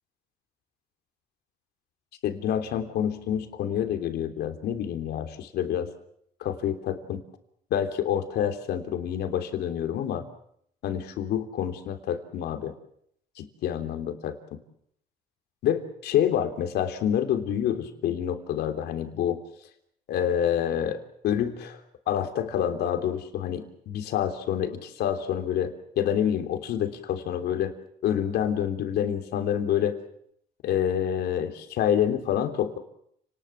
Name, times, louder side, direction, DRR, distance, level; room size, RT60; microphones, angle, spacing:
voice 1, 2.2-5.9 6.4-7.2 7.7-10.2 10.8-12.7 13.4-14.6 15.6-19.4 20.1-21.0 21.2-21.8 22.1-27.7 28.0-30.0 30.6-32.8, left 9 dB, 75° left, 6 dB, 3.4 m, -27 dB
30.0 x 20.0 x 7.4 m, 0.71 s
cardioid pair, 110°, 17 cm